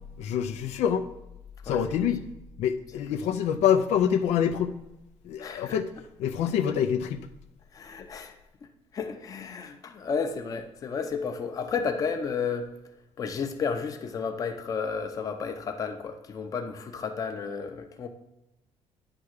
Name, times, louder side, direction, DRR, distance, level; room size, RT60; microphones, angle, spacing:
voice 1, 0.2-1.1 1.7-2.3 2.6-4.8 5.2-5.9 6.2-7.2, left 8 dB, 85° left, 8 dB, 0.6 m, -26 dB
voice 2, 5.4-5.8 6.4-6.5 7.7-8.4 8.6-8.7 8.9-12.7 13.2-18.1, left 5 dB, 30° left, 5 dB, 0.7 m, -32 dB
9.8 x 3.6 x 6.5 m, 0.91 s
cardioid pair, 170°, 11 cm